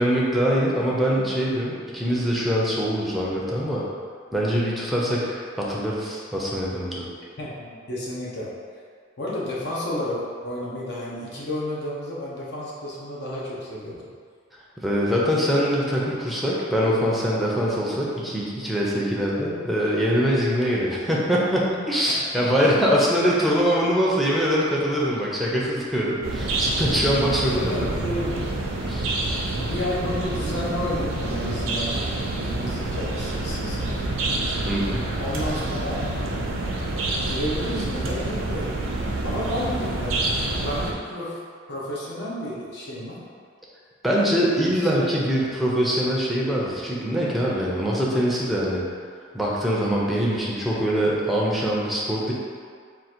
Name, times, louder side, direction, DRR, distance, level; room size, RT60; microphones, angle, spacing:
voice 1, 0.0-3.8 4.3-7.0 14.8-27.5 28.8-29.3 34.6-35.0 44.0-48.8 49.3-52.3, equal, ahead, -5 dB, 0.5 m, -23 dB
voice 2, 7.4-8.5 9.2-14.1 22.1-22.5 27.5-28.4 29.6-31.9 32.4-34.2 35.2-36.1 37.3-38.8 39.2-40.2 40.4-41.4 41.7-43.2 44.7-44.9, left 1 dB, 55° left, -5 dB, 0.8 m, -31 dB
sound 1, 26.2-40.9, right 2 dB, 80° right, 0.5 m, -27 dB
3.7 x 2.4 x 4.4 m, 2.1 s
head